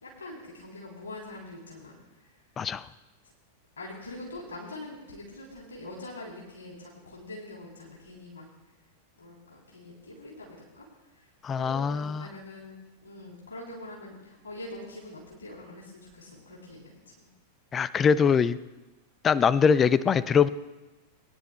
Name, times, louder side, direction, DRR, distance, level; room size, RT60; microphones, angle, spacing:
voice 1, 0.0-2.3 3.8-8.5 9.2-10.9 11.2-12.7 13.0-17.3, left 2 dB, 70° left, -4 dB, 3.4 m, -44 dB
voice 2, 11.4-12.3 17.7-18.6 19.2-20.5, left 6 dB, 25° left, 18 dB, 0.4 m, -22 dB
23.0 x 10.0 x 2.3 m, 1.1 s
figure-of-eight pair, 90°, 0 cm